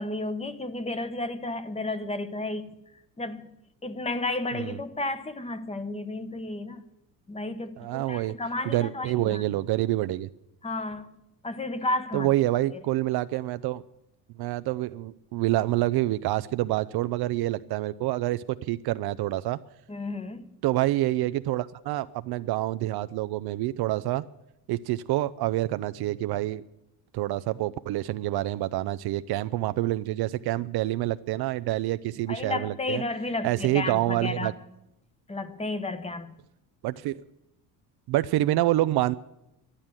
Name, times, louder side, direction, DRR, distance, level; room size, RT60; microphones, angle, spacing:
voice 1, 0.0-2.8 3.2-3.5 3.8-6.8 7.3-9.4 10.6-12.3 12.7-12.8 19.9-20.5 32.3-34.6 35.3-36.3, left 2 dB, 15° left, 1.1 m, -32 dB
voice 2, 7.8-8.3 8.7-10.3 12.1-13.8 14.4-19.6 20.6-24.2 24.7-26.6 27.1-33.0 33.4-34.5 36.8-37.2 38.1-39.1, right 16 dB, 65° right, 0.6 m, -27 dB
12.5 x 11.5 x 8.9 m
cardioid pair, 120°, 41 cm